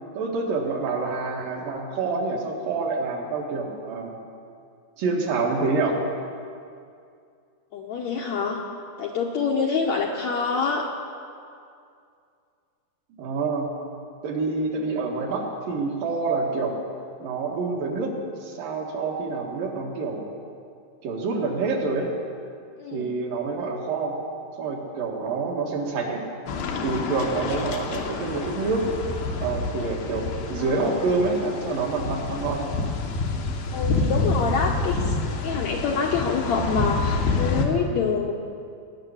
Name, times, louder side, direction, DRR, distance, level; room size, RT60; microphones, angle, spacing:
voice 1, 0.1-4.1 5.0-6.0 13.2-13.7 14.2-16.8 17.2-18.1 18.4-20.3 21.0-22.1 22.9-24.1 24.6-26.2 26.8-28.9 29.4-32.7, right 3 dB, 70° right, -1 dB, 3.3 m, -27 dB
voice 2, 7.7-8.6 9.0-10.8 22.8-23.1 30.6-30.9 33.7-35.1 35.4-38.3, left 5 dB, 70° left, 0 dB, 1.8 m, -26 dB
Neighborhood Ambience, 26.5-37.7, left 3 dB, 90° left, 3.3 m, -28 dB
19.5 x 6.8 x 9.9 m, 2.4 s
omnidirectional pair, 4.2 m